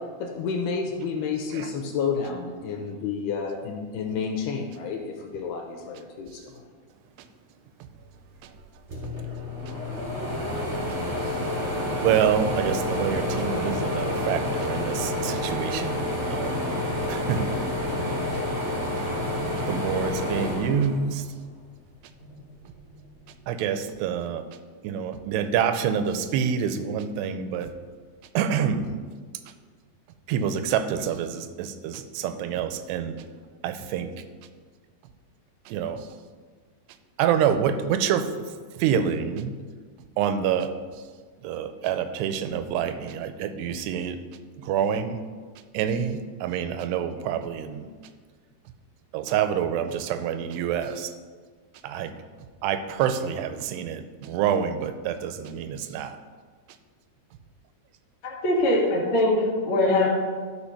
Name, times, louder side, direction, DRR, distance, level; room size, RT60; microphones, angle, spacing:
voice 1, 0.2-6.6, left 5 dB, 80° left, 2 dB, 2.7 m, -30 dB
sound 1, 8.6-8.7 8.9-21.5 21.9-23.1, left 1 dB, 30° right, 1.8 m, -29 dB
voice 2, 12.0-16.0 16.3-16.7 17.1-17.8 19.7-21.3 23.5-24.5 24.8-27.7 28.3-29.0 30.3-33.2 33.6-34.1 35.7-36.1 37.2-38.5 38.8-39.6 40.2-40.8 41.4-44.2 44.6-45.2 45.7-47.9 49.1-51.1 51.8-52.2 52.6-56.2, right 8 dB, 90° right, 9 dB, 2.7 m, -27 dB
voice 3, 58.2-60.1, left 1 dB, 45° left, -5 dB, 1.7 m, -22 dB
11.5 x 5.0 x 5.6 m, 1.5 s
omnidirectional pair, 4.8 m